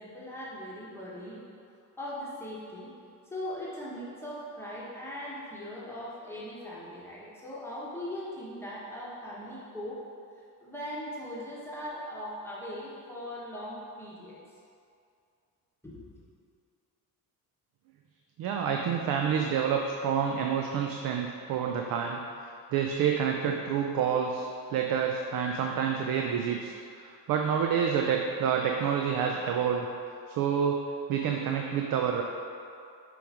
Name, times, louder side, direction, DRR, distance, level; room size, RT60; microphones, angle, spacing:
voice 1, 0.0-1.4 2.0-2.9 3.2-10.0 10.6-14.4 15.8-16.0, left 1 dB, 5° left, -8 dB, 1.0 m, -39 dB
voice 2, 18.4-22.2 22.7-29.9 30.3-30.8 31.1-32.2, right 7 dB, 60° right, 2 dB, 0.5 m, -28 dB
6.9 x 3.1 x 4.9 m, 2.4 s
cardioid pair, 135°, 38 cm